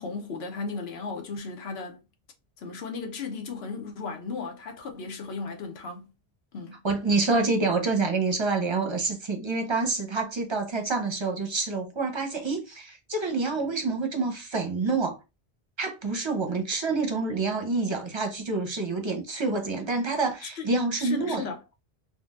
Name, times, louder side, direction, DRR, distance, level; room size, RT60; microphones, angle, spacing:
voice 1, 0.0-2.0 2.6-6.0 6.5-6.8 20.4-20.7 21.0-21.6, left 4 dB, 80° left, 0.9 m, -35 dB
voice 2, 6.8-15.2 15.8-21.4, right 3 dB, 30° right, 0.6 m, -27 dB
3.8 x 2.2 x 2.4 m
omnidirectional pair, 1.1 m